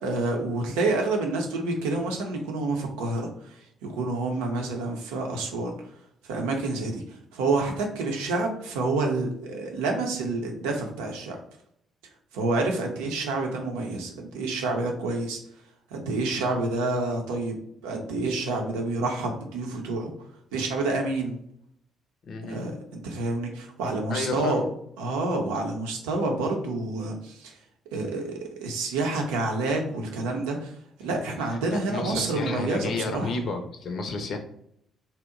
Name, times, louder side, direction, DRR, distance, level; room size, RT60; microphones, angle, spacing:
voice 1, 0.0-5.9 6.2-11.4 12.3-15.4 15.9-17.6 17.8-20.1 20.5-21.4 22.5-24.6 25.0-27.6 27.9-33.5, right 2 dB, 75° right, 2 dB, 0.6 m, -28 dB
voice 2, 22.2-22.6 24.1-24.7 31.7-34.4, left 3 dB, 55° left, 6 dB, 0.5 m, -31 dB
2.8 x 2.0 x 3.7 m, 0.72 s
hypercardioid pair, 45°, 0 cm